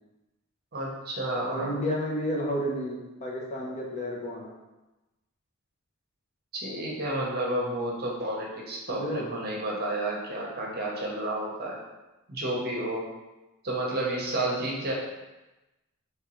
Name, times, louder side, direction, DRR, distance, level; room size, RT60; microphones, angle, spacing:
voice 1, 0.7-1.7 6.5-11.8 12.3-13.0 13.6-14.9, right 1 dB, 45° right, -3 dB, 0.8 m, -31 dB
voice 2, 1.5-4.5 8.9-9.3, equal, 30° left, -3 dB, 0.6 m, -31 dB
3.6 x 3.2 x 3.0 m, 1.0 s
head